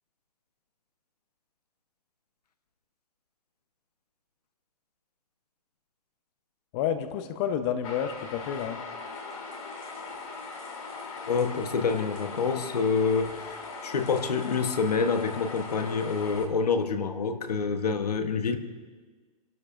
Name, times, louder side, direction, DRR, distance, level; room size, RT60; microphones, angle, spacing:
voice 1, 6.7-8.8, left 9 dB, 45° left, 9 dB, 1.0 m, -30 dB
sound 1, 7.8-16.4, left 4 dB, 65° left, 3.3 m, -40 dB
voice 2, 11.2-18.6, left 5 dB, 85° left, 8 dB, 1.2 m, -27 dB
28.5 x 12.0 x 2.6 m, 1.4 s
hypercardioid pair, 120°, 20 cm